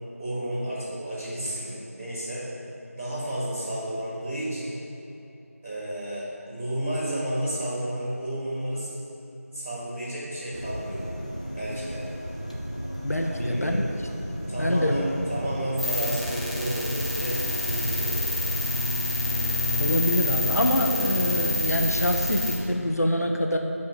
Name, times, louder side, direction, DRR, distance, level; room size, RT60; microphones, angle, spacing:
voice 1, 0.2-2.4 2.9-4.8 5.6-8.9 9.5-11.0 11.5-12.0 13.2-13.8 14.5-17.4 17.6-18.2, right 1 dB, 5° right, -22 dB, 2.4 m, -31 dB
sound 1, 10.5-18.2, equal, 25° left, 0.6 m, -35 dB
voice 2, 13.0-13.8 14.6-15.0 19.8-23.6, left 1 dB, 85° left, 3 dB, 1.0 m, -25 dB
sound 2, 15.8-22.5, left 2 dB, 25° right, 1.2 m, -27 dB
9.4 x 5.6 x 6.5 m, 2.9 s
figure-of-eight pair, 180°, 8 cm